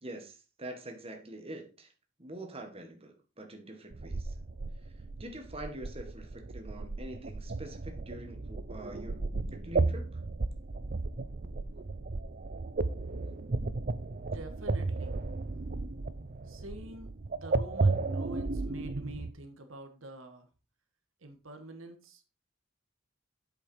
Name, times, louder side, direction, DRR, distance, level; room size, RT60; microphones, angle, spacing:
voice 1, 0.0-1.9 2.2-4.3 5.2-9.2 9.5-10.2, right 1 dB, 30° right, 4 dB, 1.8 m, -45 dB
sound 1, 3.9-19.3, right 3 dB, 45° right, 0.6 m, -34 dB
voice 2, 14.2-15.4 16.4-20.5 21.2-22.3, right 2 dB, 80° right, 7 dB, 1.6 m, -47 dB
8.4 x 7.0 x 4.7 m, 0.32 s
head